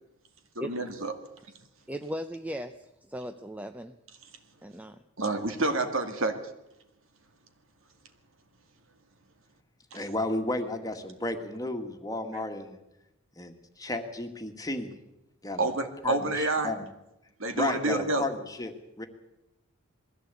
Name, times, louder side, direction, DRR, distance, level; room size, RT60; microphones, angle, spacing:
voice 1, 0.6-1.1 5.2-6.4 9.9-10.0 15.6-16.7 17.4-18.3, right 2 dB, 65° right, 7 dB, 2.2 m, -28 dB
voice 2, 1.9-4.0 4.6-5.0, equal, 5° right, 7 dB, 0.6 m, -37 dB
voice 3, 9.9-12.8 13.4-14.9 15.4-15.7 16.0-16.8 17.5-19.1, left 2 dB, 15° left, 6 dB, 1.8 m, -33 dB
21.0 x 15.5 x 8.3 m, 0.89 s
head